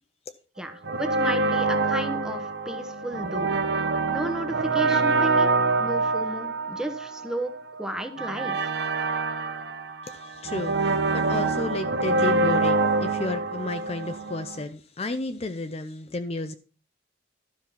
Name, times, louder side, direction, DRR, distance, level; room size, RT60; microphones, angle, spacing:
voice 1, 0.6-3.5 4.1-7.5 7.8-8.7, right 1 dB, 5° right, 1.0 m, -33 dB
sound 1, 0.8-14.6, right 3 dB, 60° right, 0.9 m, -26 dB
voice 2, 10.0-16.5, left 2 dB, 30° left, 0.5 m, -32 dB
12.5 x 5.5 x 5.8 m
head